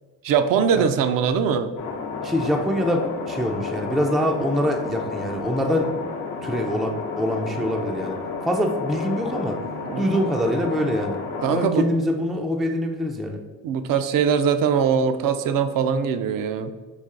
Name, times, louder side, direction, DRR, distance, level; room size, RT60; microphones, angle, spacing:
voice 1, 0.2-1.7 9.9-10.0 11.4-11.9 13.6-16.7, right 7 dB, 60° right, 9 dB, 0.5 m, -21 dB
sound 1, 1.8-11.6, left 4 dB, 80° left, 0.8 m, -31 dB
voice 2, 2.2-6.1 6.4-9.6 10.0-13.4, equal, ahead, 2 dB, 0.3 m, -25 dB
4.2 x 2.8 x 3.7 m, 1.4 s
supercardioid pair, 80°, 38 cm